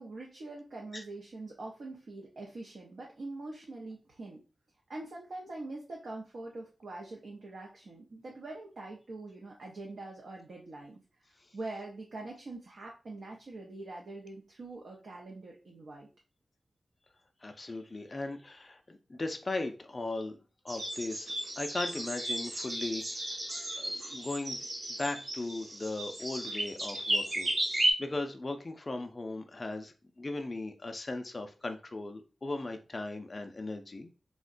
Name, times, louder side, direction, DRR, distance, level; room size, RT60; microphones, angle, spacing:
voice 1, 0.0-4.4 4.9-16.1, right 2 dB, 70° right, -1 dB, 0.6 m, -44 dB
voice 2, 17.4-20.4 20.6-23.3 23.8-24.7 25.0-27.5 28.0-34.1, left 2 dB, 30° left, 5 dB, 0.3 m, -38 dB
sound 1, 20.7-27.9, right 1 dB, 35° right, 0.8 m, -34 dB
3.6 x 2.1 x 2.4 m, 0.34 s
wide cardioid pair, 150°, 0 cm